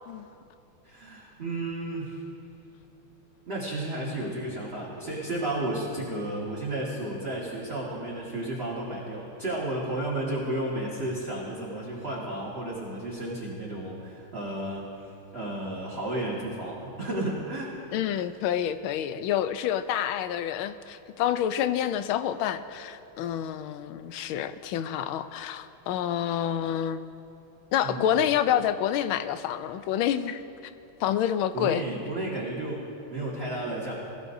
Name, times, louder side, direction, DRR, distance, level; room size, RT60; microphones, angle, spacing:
voice 1, 0.8-2.2 3.5-17.7 27.8-28.1 31.5-33.9, right 1 dB, 30° right, -7 dB, 1.9 m, -33 dB
voice 2, 17.9-27.0 27.7-30.4 31.0-31.8, left 10 dB, 80° left, 12 dB, 1.4 m, -28 dB
21.5 x 15.0 x 2.7 m, 2.7 s
omnidirectional pair, 2.3 m